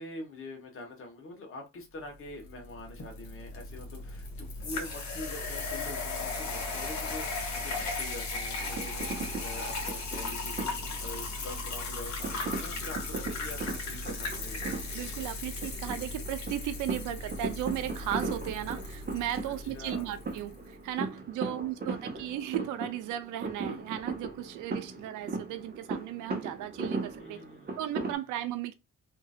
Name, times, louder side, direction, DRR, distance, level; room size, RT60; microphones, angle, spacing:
voice 1, 0.0-14.8 19.4-20.1 21.4-21.7 24.4-25.1 27.2-27.8 28.1-28.2, left 2 dB, 45° left, 1.2 m, -45 dB
sound 1, 2.4-20.5, left 3 dB, 65° left, 1.6 m, -37 dB
sound 2, 8.6-28.1, right 3 dB, 30° right, 1.0 m, -38 dB
voice 2, 14.9-27.4 27.8-28.7, right 12 dB, 90° right, 0.5 m, -36 dB
2.9 x 2.6 x 2.4 m
cardioid pair, 90°, 30 cm